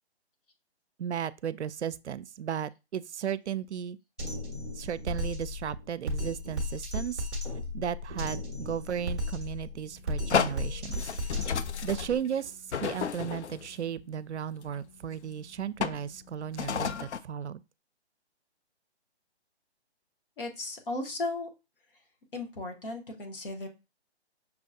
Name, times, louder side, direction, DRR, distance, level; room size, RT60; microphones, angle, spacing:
voice 1, 1.0-4.0 4.7-7.3 7.7-11.1 11.8-17.6, right 9 dB, 85° right, 0.5 m, -35 dB
Drum kit, 4.2-12.2, left 1 dB, 5° left, 0.4 m, -35 dB
sound 1, 9.9-10.0 10.3-13.7 14.6-14.7 15.8-16.1 16.5-17.2, left 7 dB, 80° left, 0.5 m, -32 dB
voice 2, 20.4-21.5 22.3-23.7, left 2 dB, 55° left, 1.4 m, -35 dB
5.7 x 2.4 x 2.7 m
hypercardioid pair, 150°, 33 cm